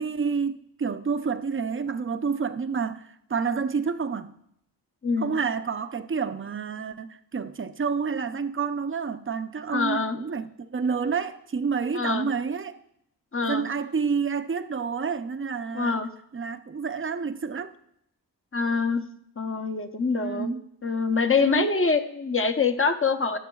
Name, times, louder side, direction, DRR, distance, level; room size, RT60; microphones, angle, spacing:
voice 1, 0.0-4.3 5.2-12.8 13.4-16.0 16.3-17.7 20.2-20.7 21.4-21.7, right 5 dB, 30° right, 0.5 m, -29 dB
voice 2, 5.0-5.4 9.7-10.2 11.9-12.3 13.3-13.7 15.7-16.1 18.5-19.0 19.4-20.5 20.8-23.4, left 4 dB, 30° left, 0.8 m, -25 dB
19.0 x 6.6 x 2.3 m
wide cardioid pair, 90°, 40 cm